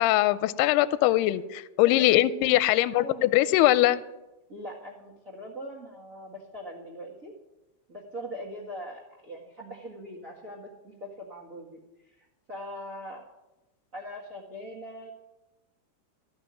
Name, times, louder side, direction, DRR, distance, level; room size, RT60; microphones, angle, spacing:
voice 1, 0.0-4.0, left 15 dB, 85° left, 15 dB, 2.5 m, -22 dB
voice 2, 1.8-2.3 3.0-3.3 4.5-7.3 7.9-13.3 13.9-15.1, equal, 65° right, -3 dB, 0.8 m, -41 dB
14.5 x 6.1 x 9.5 m, 1.0 s
omnidirectional pair, 4.7 m